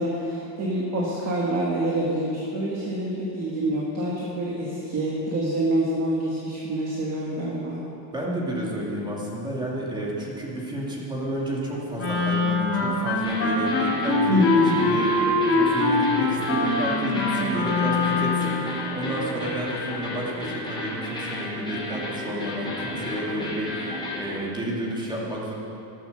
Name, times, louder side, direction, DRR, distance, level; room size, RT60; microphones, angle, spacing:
voice 1, 0.0-7.8 14.3-14.8, right 1 dB, 30° right, -3 dB, 2.0 m, -26 dB
voice 2, 8.1-15.1 15.5-25.5, right 1 dB, 10° right, -4 dB, 2.5 m, -31 dB
Wind instrument woodwind instrument, 12.0-18.6, left 3 dB, 30° left, 2.7 m, -23 dB
sound 1, 13.2-24.4, left 1 dB, 10° left, 3.2 m, -33 dB
13.0 x 12.5 x 6.7 m, 2.9 s
cardioid pair, 165°, 49 cm